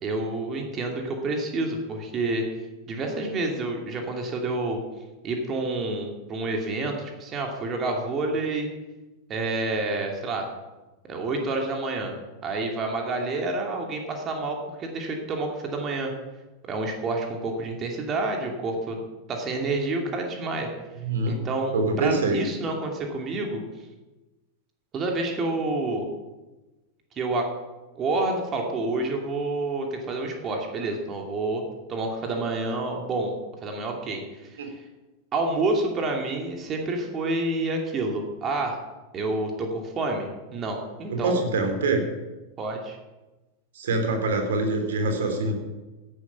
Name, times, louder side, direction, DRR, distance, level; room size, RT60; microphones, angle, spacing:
voice 1, 0.0-2.5 2.9-4.8 5.2-8.7 9.3-10.5 11.0-12.1 12.4-16.1 16.6-19.0 19.3-20.7 21.3-23.6 24.9-26.1 27.1-27.5 27.9-31.6 31.9-33.4 33.6-34.7 35.3-38.8 39.1-41.4 42.6-43.0, right 2 dB, 25° right, 2 dB, 2.8 m, -28 dB
voice 2, 21.0-21.4 21.7-22.4 34.6-34.7 41.1-42.0 43.7-45.5, right 2 dB, 60° right, 5 dB, 3.2 m, -25 dB
16.5 x 9.8 x 6.1 m, 1.1 s
figure-of-eight pair, 90°, 0 cm